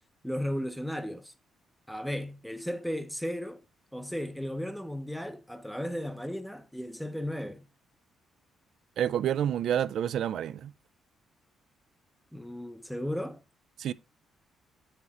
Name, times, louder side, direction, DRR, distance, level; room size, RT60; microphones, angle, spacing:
voice 1, 0.2-1.3 1.9-3.6 3.9-7.7 12.3-13.4, equal, ahead, 0.6 m, -35 dB
voice 2, 9.0-10.7 13.8-13.9, right 10 dB, 70° right, 0.3 m, -28 dB
7.7 x 5.7 x 2.9 m
cardioid pair, 90°, 0 cm